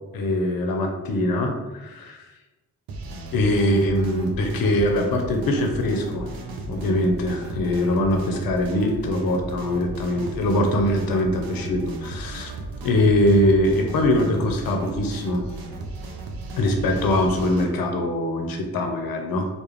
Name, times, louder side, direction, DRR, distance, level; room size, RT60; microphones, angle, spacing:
voice 1, 0.1-2.2 3.3-6.3 6.7-12.5 12.8-15.4 16.6-19.5, left 1 dB, 60° left, 4 dB, 0.6 m, -22 dB
sound 1, 2.9-17.7, right 2 dB, 60° right, 0.5 m, -35 dB
2.3 x 2.1 x 3.1 m, 1.1 s
hypercardioid pair, 40°, 40 cm